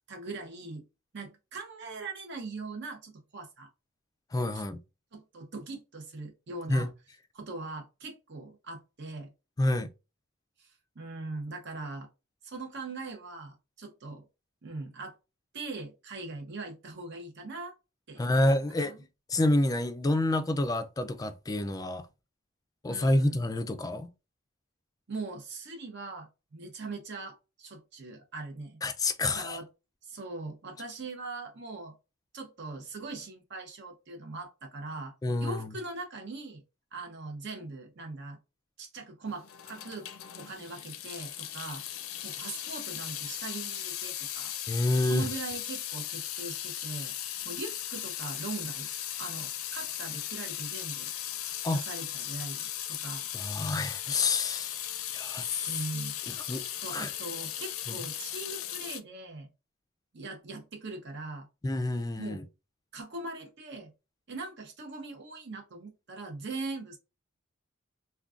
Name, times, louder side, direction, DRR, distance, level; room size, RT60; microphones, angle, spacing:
voice 1, 0.1-0.8 1.1-3.7 4.5-4.6 5.1-6.9 7.3-9.3 10.6-12.1 12.4-14.2 14.6-15.2 15.5-17.7 18.1-19.0 22.9-23.4 25.1-28.8 29.2-29.7 30.0-31.9 32.3-35.1 35.4-36.6 36.9-38.4 38.8-40.1 40.4-41.8 42.2-44.5 45.0-47.1 47.4-48.9 49.2-51.1 51.7-53.3 55.7-56.2 56.8-59.5 60.1-61.5 62.2-62.4 62.9-63.9 64.3-67.0, right 3 dB, 55° right, 0.7 m, -41 dB
voice 2, 4.3-4.8 6.7-6.9 9.6-9.9 18.2-19.0 19.3-22.0 22.8-24.1 28.8-29.6 35.2-35.7 44.7-45.3 51.6-51.8 53.3-54.8 55.1-55.8 56.3-57.1 57.9-58.0 61.6-62.4, left 2 dB, 20° left, 0.3 m, -28 dB
Water tap faucet / Sink (filling or washing) / Drip, 39.4-59.0, left 11 dB, 90° left, 0.4 m, -37 dB
3.6 x 2.2 x 2.4 m
head